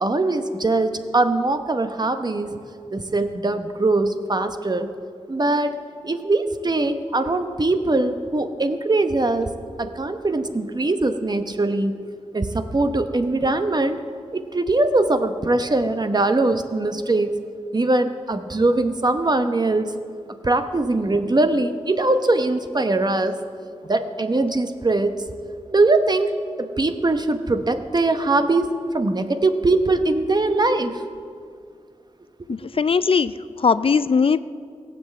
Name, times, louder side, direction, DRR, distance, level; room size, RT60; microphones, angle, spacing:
voice 1, 0.0-2.6 2.9-4.9 5.3-5.8 6.0-9.5 9.8-11.9 12.3-14.0 14.3-17.3 17.7-19.9 20.4-23.4 23.8-25.2 25.7-26.3 26.6-28.7 28.9-31.0, right 2 dB, 40° right, 8 dB, 0.9 m, -21 dB
voice 2, 32.5-34.4, left 5 dB, 55° left, 15 dB, 0.4 m, -20 dB
17.0 x 7.8 x 7.5 m, 2.3 s
wide cardioid pair, 65°, 11 cm